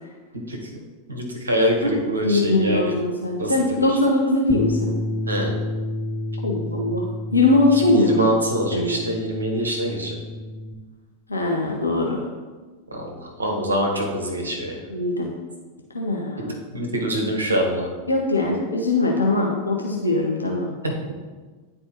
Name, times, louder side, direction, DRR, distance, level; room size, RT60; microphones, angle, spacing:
voice 1, 1.1-2.9 3.4-3.9 5.3-5.5 7.9-10.1 12.9-14.8 16.7-17.9 20.8-21.1, equal, 75° right, 0 dB, 1.4 m, -24 dB
voice 2, 2.2-4.9 6.4-7.0 7.3-8.4 8.7-9.0 11.3-12.2 14.9-15.3 15.9-16.5 18.1-20.7, left 2 dB, 80° left, -1 dB, 0.8 m, -21 dB
Bass guitar, 4.5-10.7, left 1 dB, 20° left, 1.0 m, -30 dB
10.0 x 4.4 x 2.9 m, 1.4 s
figure-of-eight pair, 90°, 0 cm